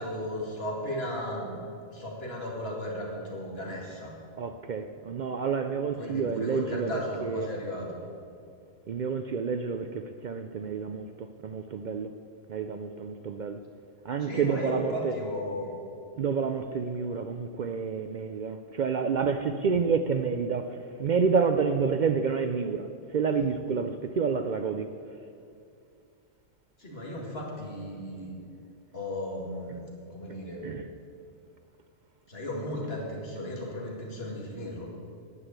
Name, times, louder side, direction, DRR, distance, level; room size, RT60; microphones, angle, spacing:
voice 1, 0.0-4.1 6.0-8.0 14.2-15.7 26.8-28.4 28.9-29.8 30.1-30.7 32.3-34.9, left 1 dB, 50° left, 2.3 m, -35 dB
voice 2, 4.4-7.5 8.9-12.1 12.5-13.6 14.0-15.1 16.2-22.9 23.1-24.9 30.6-30.8, right 5 dB, 65° right, 0.4 m, -29 dB
9.7 x 8.0 x 8.0 m
omnidirectional pair, 1.3 m